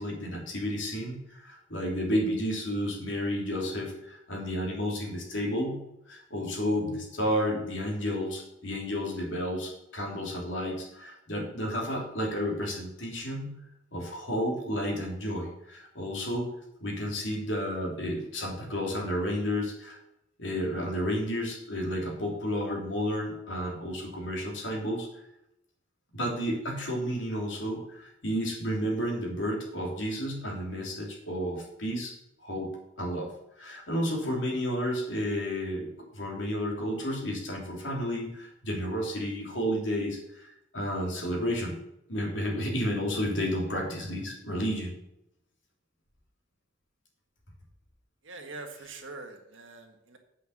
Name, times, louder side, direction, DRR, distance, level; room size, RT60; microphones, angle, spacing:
voice 1, 0.0-13.6 13.9-16.5 16.8-20.0 20.4-25.1 26.1-32.1 32.4-32.7 33.0-41.8 42.1-45.0, equal, 75° left, -1 dB, 3.2 m, -31 dB
voice 2, 48.2-50.2, right 3 dB, 90° right, 4 dB, 1.6 m, -43 dB
8.2 x 5.9 x 7.1 m, 0.83 s
head